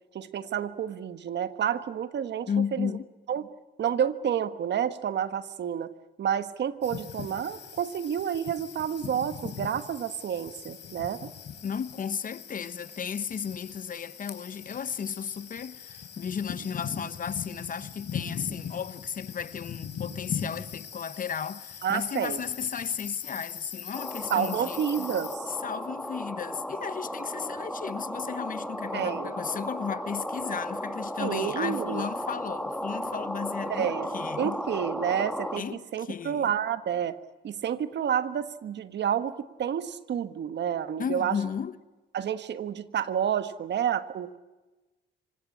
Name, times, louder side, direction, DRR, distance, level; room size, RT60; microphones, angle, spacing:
voice 1, 0.1-2.9 3.3-3.5 3.8-5.9 6.2-11.3 21.8-22.4 24.3-25.5 28.9-29.3 31.2-32.0 33.7-34.1 34.4-37.1 37.4-41.4 42.1-44.4, right 9 dB, 60° right, 1.4 m, -29 dB
voice 2, 2.5-3.1 11.6-24.8 25.5-34.6 35.6-36.5 41.0-41.8, left 7 dB, 45° left, 1.0 m, -34 dB
sound 1, 6.8-25.4, left 7 dB, 60° left, 4.0 m, -40 dB
sound 2, 23.9-35.6, equal, 5° left, 2.1 m, -35 dB
26.5 x 17.5 x 9.8 m
cardioid pair, 90°, 20 cm